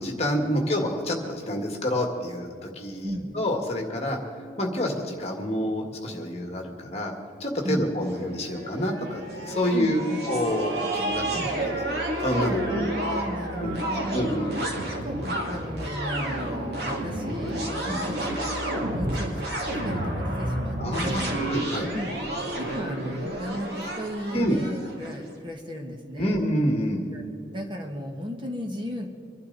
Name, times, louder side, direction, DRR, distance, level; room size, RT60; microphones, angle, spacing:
voice 1, 0.0-4.2 4.6-7.1 7.4-10.0 10.3-11.2 12.2-12.6 13.6-13.7 14.1-14.5 17.8-18.0 20.8-21.2 21.5-21.9 24.3-24.6 26.2-27.0, equal, 35° left, 2 dB, 1.9 m, -27 dB
voice 2, 3.0-3.3 7.6-7.9 9.7-10.2 11.3-11.5 12.7-14.2 14.8-19.4 19.8-21.4 21.9-22.1 22.6-26.3 27.1-27.2 27.5-29.1, equal, 25° right, 1 dB, 1.5 m, -34 dB
sound 1, 8.1-25.2, right 1 dB, 60° right, 2.6 m, -30 dB
25.0 x 11.5 x 4.1 m, 2.3 s
head